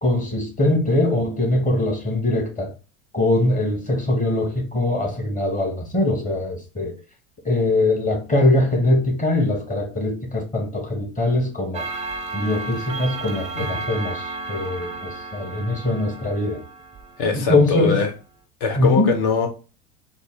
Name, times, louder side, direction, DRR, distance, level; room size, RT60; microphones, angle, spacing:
voice 1, 0.0-2.7 3.1-6.9 7.4-11.9 12.3-16.6 17.3-18.0 18.8-19.1, left 1 dB, 20° left, 1.2 m, -22 dB
Clock, 11.7-17.7, right 3 dB, 15° right, 0.6 m, -33 dB
voice 2, 17.2-18.1 18.6-19.5, left 5 dB, 60° left, 1.4 m, -22 dB
4.0 x 2.0 x 3.6 m
supercardioid pair, 105°, 43 cm